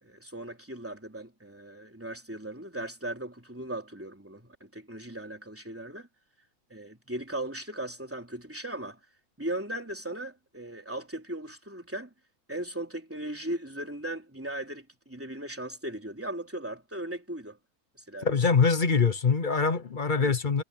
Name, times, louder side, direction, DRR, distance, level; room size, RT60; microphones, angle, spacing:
voice 1, 0.0-6.1 6.7-9.0 9.4-12.1 12.5-17.6 18.0-18.3 20.2-20.3, right 1 dB, 10° right, 3.5 m, -38 dB
voice 2, 18.2-20.6, left 5 dB, 40° left, 0.9 m, -24 dB
omnidirectional pair, 1.6 m